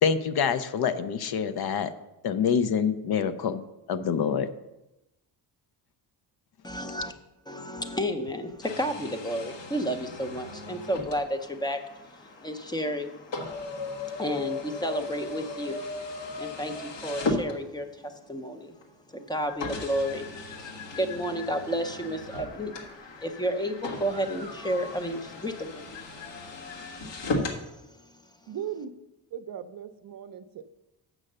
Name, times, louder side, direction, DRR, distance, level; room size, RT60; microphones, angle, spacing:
voice 1, 0.0-1.9 2.2-3.6 3.9-4.5, left 7 dB, 60° left, 12 dB, 0.6 m, -26 dB
voice 2, 6.6-7.1 7.5-13.1 13.9-15.8 16.4-18.7 19.1-20.3 20.6-26.0 26.7-28.2, equal, 10° left, 7 dB, 0.5 m, -32 dB
sound 1, 8.6-18.1 18.8-18.9 19.6-27.6, left 2 dB, 75° left, 1.7 m, -37 dB
sound 2, 19.5-27.5, left 5 dB, 40° left, 1.3 m, -47 dB
voice 3, 28.5-28.9 29.3-30.6, right 9 dB, 50° right, 10 dB, 0.6 m, -37 dB
7.6 x 6.2 x 6.6 m, 0.95 s
cardioid pair, 165°, 44 cm